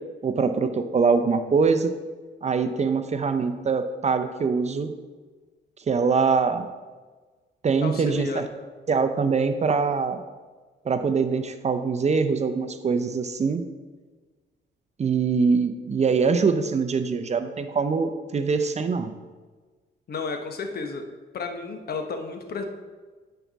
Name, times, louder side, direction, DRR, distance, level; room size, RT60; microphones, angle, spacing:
voice 1, 0.2-1.9 2.4-4.9 5.9-6.7 7.6-8.4 8.9-10.2 10.8-13.6 15.0-19.1, right 5 dB, 35° right, 8 dB, 0.6 m, -23 dB
voice 2, 7.8-8.5 20.1-21.1 21.3-22.6, left 4 dB, 50° left, 5 dB, 1.1 m, -32 dB
9.8 x 4.7 x 4.1 m, 1.4 s
cardioid pair, 90°, 20 cm